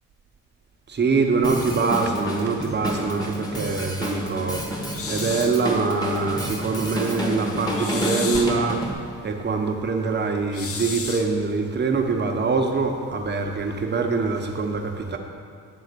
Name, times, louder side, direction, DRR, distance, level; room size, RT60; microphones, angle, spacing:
voice 1, 0.9-4.7 5.1-8.8 9.2-15.2, right 4 dB, 35° right, 3 dB, 1.0 m, -24 dB
Drum kit, 1.4-8.9, right 1 dB, 15° left, 1.4 m, -29 dB
sound 1, 4.9-5.6 7.7-8.6 10.5-11.3, left 4 dB, 50° left, 0.9 m, -32 dB
8.7 x 3.7 x 6.8 m, 2.3 s
cardioid pair, 90°, 30 cm